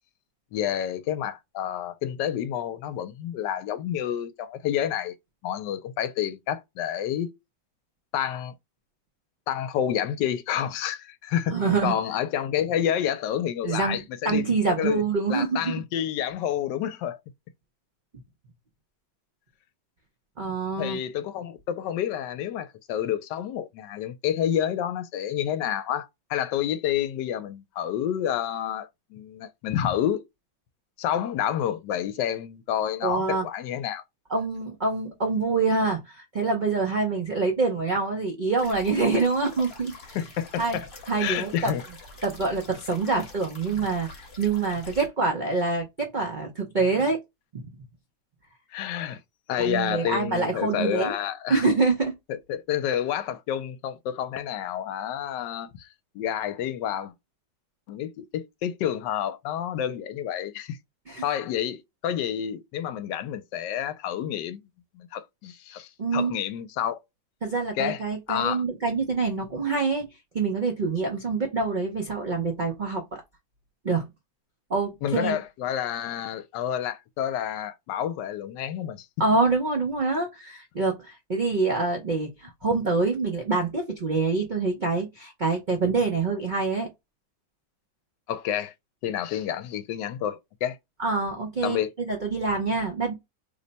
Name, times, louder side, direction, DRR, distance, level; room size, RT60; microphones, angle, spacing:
voice 1, 0.5-5.1 5.4-7.3 8.1-8.5 9.5-14.5 14.8-15.0 15.3-17.2 20.8-30.2 31.0-34.0 40.1-40.9 41.2-41.8 48.7-49.2 49.5-51.6 52.5-55.9 56.1-57.1 57.9-60.8 61.2-64.6 64.9-67.0 67.7-68.0 68.3-68.6 75.0-79.1 88.3-88.7 89.0-90.8 91.6-91.9, left 10 dB, 80° left, 1.2 m, -29 dB
voice 2, 11.5-11.9 13.6-15.7 20.4-21.0 33.0-33.5 34.3-40.2 40.6-40.8 41.1-41.7 42.2-47.2 47.5-47.6 49.6-51.1 51.5-52.1 61.1-61.2 66.0-66.4 67.4-70.1 70.3-73.0 73.8-74.0 74.7-75.4 79.2-86.9 91.0-93.1, right 4 dB, 65° right, 0.4 m, -26 dB
sound 1, 38.6-45.1, left 2 dB, 40° left, 1.1 m, -45 dB
3.2 x 2.1 x 3.9 m
omnidirectional pair, 1.9 m